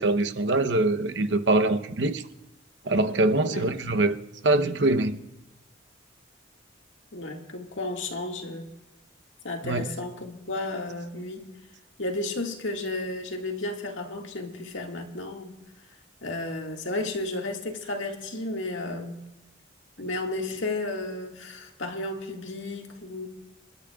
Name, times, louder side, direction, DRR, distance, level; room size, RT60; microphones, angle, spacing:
voice 1, 0.0-2.2 2.8-4.2 4.4-5.2 9.6-9.9, right 2 dB, 65° right, 0.8 m, -23 dB
voice 2, 7.1-8.7 9.4-11.5 12.0-15.6 16.2-19.2 20.0-23.3, left 2 dB, 80° left, 1.9 m, -33 dB
27.5 x 12.0 x 2.4 m
head